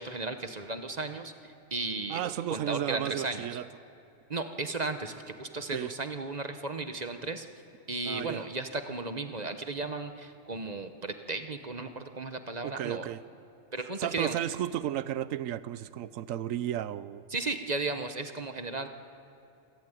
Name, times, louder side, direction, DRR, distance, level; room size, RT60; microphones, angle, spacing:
voice 1, 0.0-2.2 2.5-3.5 4.3-7.5 7.9-13.1 13.7-14.4 17.3-18.9, right 3 dB, 35° right, 1.0 m, -35 dB
voice 2, 2.1-3.7 5.7-5.9 8.0-8.4 12.6-13.2 13.8-17.2, right 11 dB, 80° right, 1.0 m, -33 dB
27.5 x 11.5 x 9.1 m
omnidirectional pair, 1.4 m